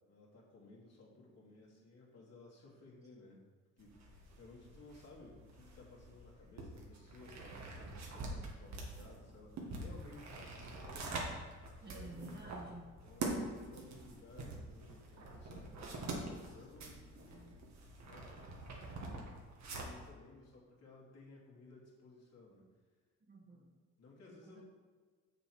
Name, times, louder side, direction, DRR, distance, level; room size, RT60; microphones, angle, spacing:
voice 1, 0.1-3.4 3.8-12.4 13.0-17.6 18.0-18.4 18.8-19.4 19.7-22.6 24.0-24.6, left 2 dB, 55° left, -4 dB, 2.6 m, -58 dB
sound 1, 3.8-20.1, right 2 dB, 65° right, 1.8 m, -46 dB
voice 2, 11.8-13.0 23.3-23.8 24.4-24.6, right 2 dB, 35° right, -2 dB, 1.6 m, -51 dB
6.7 x 6.7 x 4.8 m, 1.5 s
cardioid pair, 90°, 30 cm